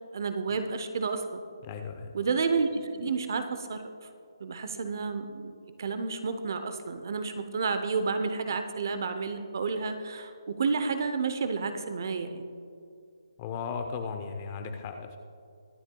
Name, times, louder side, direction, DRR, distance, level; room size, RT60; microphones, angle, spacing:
voice 1, 0.1-1.4 2.1-3.8 4.4-5.5 5.8-12.4, right 4 dB, 40° right, 8 dB, 0.7 m, -30 dB
voice 2, 1.6-2.1 13.4-15.2, left 5 dB, 20° left, 6 dB, 0.6 m, -36 dB
23.5 x 8.7 x 2.3 m, 2.4 s
hypercardioid pair, 170°, 3 cm